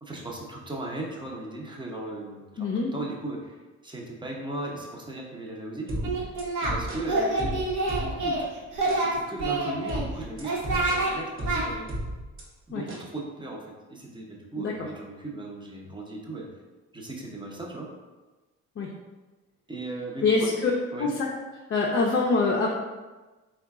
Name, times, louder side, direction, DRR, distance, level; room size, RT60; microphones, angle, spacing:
voice 1, 0.0-3.6 3.8-6.3 6.7-7.6 7.9-8.5 8.8-11.9 12.7-16.5 16.9-17.9 19.7-20.5 20.9-21.1, right 2 dB, 15° right, -1 dB, 0.7 m, -37 dB
voice 2, 2.6-2.9 12.7-12.8 14.6-14.7 18.8-18.9 20.2-20.7 21.0-21.3 21.7-22.7, left 3 dB, 45° left, -3 dB, 0.5 m, -24 dB
sound 1, 5.9-8.4 8.9-9.1 9.9-12.4 12.9-13.1, right 1 dB, 45° right, 1.0 m, -34 dB
Singing, 6.0-6.7 7.0-8.4 8.7-10.0 10.4-11.1 11.4-11.6, right 2 dB, 80° right, 1.0 m, -27 dB
3.6 x 2.3 x 3.6 m, 1.2 s
cardioid pair, 90°, 30 cm